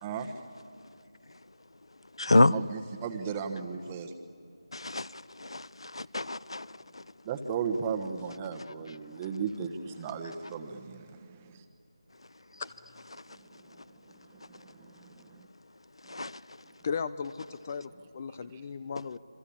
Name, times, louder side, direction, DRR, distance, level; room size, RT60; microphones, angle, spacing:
voice 1, 0.0-0.3 2.4-4.1 7.2-11.6 13.4-13.5 14.3-15.5, right 6 dB, 15° right, 1.2 m, -36 dB
voice 2, 2.2-2.6 4.7-6.7 16.1-16.3, left 2 dB, 75° left, 0.6 m, -26 dB
voice 3, 16.8-19.2, left 6 dB, 30° left, 0.6 m, -36 dB
27.0 x 24.5 x 8.7 m
figure-of-eight pair, 165°, 3 cm